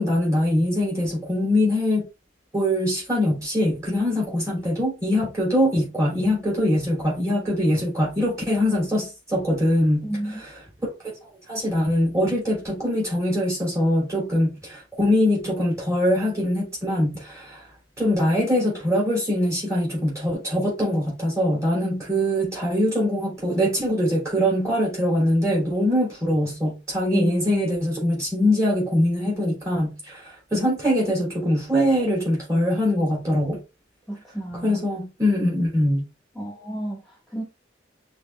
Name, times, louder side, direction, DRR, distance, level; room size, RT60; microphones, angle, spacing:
voice 1, 0.0-2.1 2.5-10.1 11.2-17.7 18.0-33.6 34.6-36.1, left 1 dB, 15° right, 3.1 m, -23 dB
voice 2, 10.0-10.4 27.1-27.8 34.1-34.8 36.3-37.4, right 1 dB, ahead, 1.7 m, -32 dB
6.3 x 3.4 x 2.4 m
head